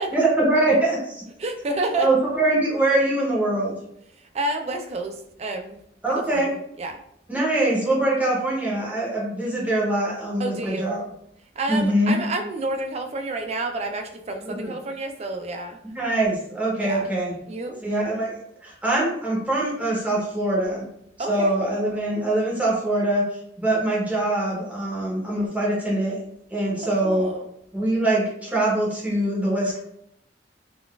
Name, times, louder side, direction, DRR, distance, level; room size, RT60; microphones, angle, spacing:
voice 1, 0.1-1.2 2.0-3.8 6.0-6.5 7.3-11.0 11.7-12.2 14.4-14.7 15.9-17.3 17.8-18.4 18.6-20.8 21.3-23.2 23.6-26.2 26.5-27.3 27.7-29.8, right 1 dB, 10° right, -5 dB, 0.7 m, -23 dB
voice 2, 1.4-2.1 4.3-5.8 6.1-7.0 10.4-10.9 11.6-15.8 16.8-17.1 17.5-17.8 21.2-21.5 27.0-27.4, right 2 dB, 35° right, 5 dB, 0.4 m, -29 dB
3.8 x 2.3 x 2.3 m, 0.74 s
head